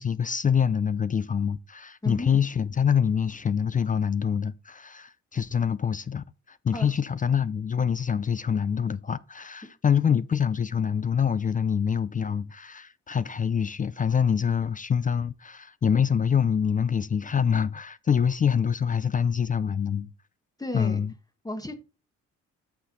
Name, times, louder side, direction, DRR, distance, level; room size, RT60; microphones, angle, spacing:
voice 1, 0.0-20.1 20.7-21.1, left 7 dB, 25° left, 0.4 m, -25 dB
voice 2, 20.6-21.0 21.4-21.7, left 1 dB, 10° left, 1.2 m, -33 dB
8.7 x 5.6 x 3.9 m
cardioid pair, 90°, 30 cm